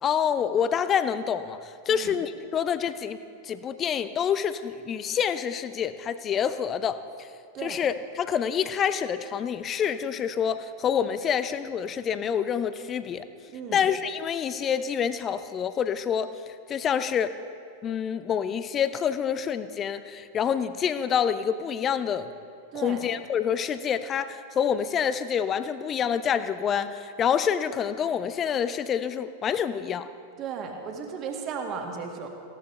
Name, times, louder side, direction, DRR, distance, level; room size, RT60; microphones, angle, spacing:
voice 1, 0.0-3.2 3.4-7.3 7.6-13.2 13.7-16.3 16.7-17.3 17.8-22.3 22.7-30.1, left 8 dB, 25° left, 12 dB, 0.7 m, -27 dB
voice 2, 13.5-13.8 22.7-23.0 30.4-32.3, right 6 dB, 35° right, 3 dB, 1.9 m, -35 dB
18.5 x 16.0 x 3.3 m, 2.6 s
figure-of-eight pair, 90°, 0 cm